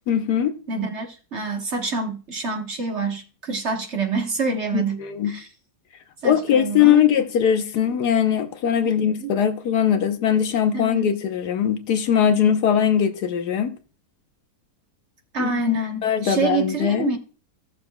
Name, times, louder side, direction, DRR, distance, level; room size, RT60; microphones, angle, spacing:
voice 1, 0.1-0.5 4.7-5.4 6.2-13.8 15.4-17.1, left 9 dB, 75° left, 1.4 m, -21 dB
voice 2, 0.7-5.5 6.2-7.0 9.2-9.3 10.7-11.1 15.3-17.2, right 4 dB, 45° right, 1.4 m, -27 dB
16.5 x 6.7 x 2.3 m
omnidirectional pair, 1.7 m